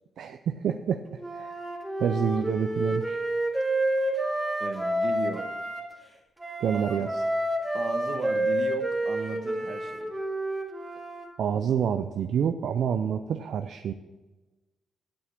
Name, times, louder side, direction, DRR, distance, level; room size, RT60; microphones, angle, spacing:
voice 1, 0.2-1.5 2.0-3.2 6.6-7.2 11.4-13.9, right 8 dB, 75° right, 7 dB, 0.5 m, -28 dB
Wind instrument woodwind instrument, 1.2-5.8 6.4-11.3, right 1 dB, 10° right, 2.1 m, -29 dB
voice 2, 4.6-5.5 6.7-6.8 7.1-7.2 7.7-10.1, right 4 dB, 60° right, 7 dB, 1.3 m, -36 dB
8.4 x 7.8 x 7.2 m, 1.2 s
cardioid pair, 80°, 0 cm